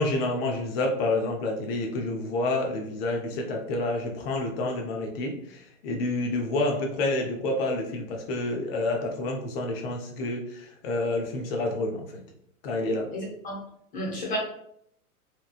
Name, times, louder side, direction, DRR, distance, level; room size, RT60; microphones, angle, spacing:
voice 1, 0.0-12.2 12.6-13.1, left 2 dB, 40° left, 2 dB, 0.7 m, -28 dB
voice 2, 13.1-13.6 13.9-14.4, equal, 20° left, -4 dB, 1.0 m, -32 dB
3.0 x 2.2 x 2.4 m, 0.73 s
hypercardioid pair, 125°, 44 cm